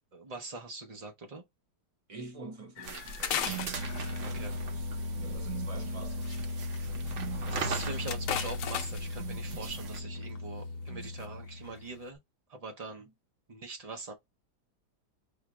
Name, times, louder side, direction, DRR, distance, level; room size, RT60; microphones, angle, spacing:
voice 1, 0.1-1.4 4.2-4.6 7.5-12.2 12.5-13.1 13.5-14.1, right 3 dB, 75° right, 0.3 m, -42 dB
voice 2, 2.1-4.0 4.2-4.9 5.2-6.3 6.8-7.2, right 3 dB, 30° right, 0.7 m, -48 dB
sound 1, 2.8-4.5 5.9-6.4 6.7-6.8 7.1-7.2 7.6-9.2 10.2-10.4 10.9-11.3 11.7-11.9, left 9 dB, 70° left, 0.8 m, -36 dB
sound 2, 2.8-10.0, right 4 dB, 55° right, 0.9 m, -41 dB
sound 3, 3.3-12.1, left 1 dB, 90° right, 1.5 m, -37 dB
5.5 x 2.4 x 3.0 m
omnidirectional pair, 1.8 m